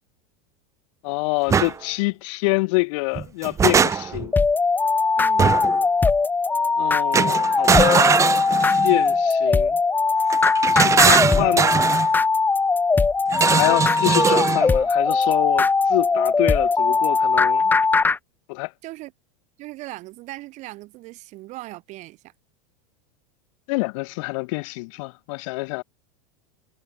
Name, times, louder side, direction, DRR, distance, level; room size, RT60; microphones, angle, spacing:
voice 1, 1.0-4.3 6.8-8.2 8.8-9.8 10.7-11.8 13.5-17.7 18.5-18.7 23.7-25.8, left 27 dB, 55° left, 7.5 m, -26 dB
sound 1, 1.5-1.7 3.2-4.3 5.4-5.8 7.1-9.0 10.3-12.1 13.3-14.7, right 6 dB, 15° right, 2.0 m, -20 dB
sound 2, 4.3-18.2, left 4 dB, 10° left, 1.7 m, -20 dB
voice 2, 5.2-5.5 13.3-14.0 18.8-19.1 19.6-22.2, right 19 dB, 40° right, 5.5 m, -39 dB
supercardioid pair, 160°, 19 cm